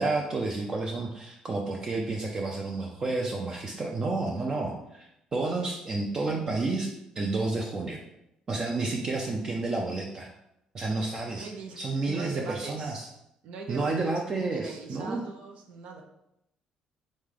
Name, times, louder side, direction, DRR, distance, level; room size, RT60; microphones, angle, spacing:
voice 1, 0.0-6.9 7.2-8.0 8.5-10.3 10.7-11.5 11.8-13.1 13.7-15.2, right 3 dB, 30° right, 0 dB, 0.5 m, -30 dB
voice 2, 11.3-11.8 12.0-13.0 13.4-16.0, right 4 dB, 70° right, 2 dB, 0.7 m, -40 dB
3.7 x 3.2 x 3.7 m, 0.81 s
cardioid pair, 125°, 2 cm